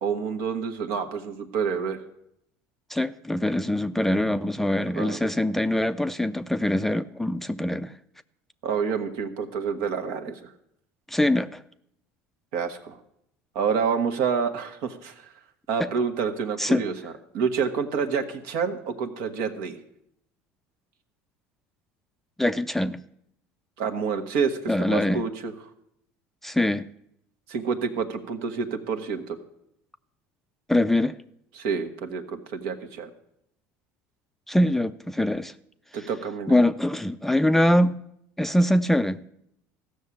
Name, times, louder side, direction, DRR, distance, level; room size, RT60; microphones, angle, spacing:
voice 1, 0.0-2.0 5.0-5.3 8.6-10.5 12.5-13.0 13.5-15.3 15.7-19.8 23.8-25.5 27.5-29.4 31.5-33.1 35.9-36.6, right 6 dB, 75° right, 6 dB, 1.5 m, -28 dB
voice 2, 2.9-7.9 11.1-11.6 15.8-15.9 16.6-16.8 22.4-23.0 24.7-25.2 26.4-26.9 30.7-31.2 34.5-35.5 36.5-38.0 38.4-39.2, left 1 dB, 5° left, 11 dB, 0.4 m, -23 dB
14.5 x 6.5 x 8.4 m, 0.75 s
supercardioid pair, 105°, 6 cm